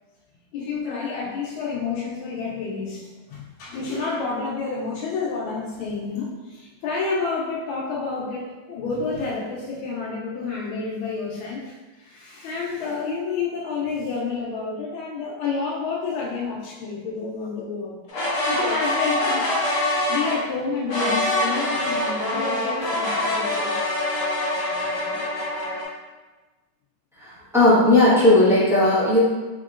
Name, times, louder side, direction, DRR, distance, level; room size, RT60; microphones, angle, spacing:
voice 1, 0.5-18.0 18.5-19.5 20.1-23.8, left 4 dB, 85° left, -5 dB, 1.4 m, -29 dB
sound 1, 18.1-20.4 20.9-25.8, left 1 dB, 45° left, 0.9 m, -24 dB
voice 2, 27.2-29.2, left 2 dB, ahead, -11 dB, 0.7 m, -16 dB
3.6 x 3.6 x 2.4 m, 1.2 s
omnidirectional pair, 2.2 m